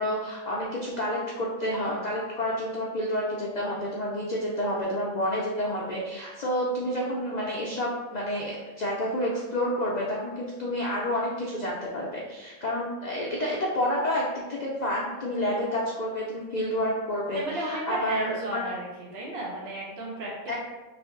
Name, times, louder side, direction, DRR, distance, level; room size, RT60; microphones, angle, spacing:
voice 1, 0.0-18.6 20.5-20.6, equal, 75° left, -4 dB, 0.4 m, -29 dB
voice 2, 17.3-18.9 19.1-20.6, right 1 dB, 55° right, -4 dB, 0.9 m, -34 dB
3.3 x 2.5 x 3.6 m, 1.2 s
omnidirectional pair, 1.5 m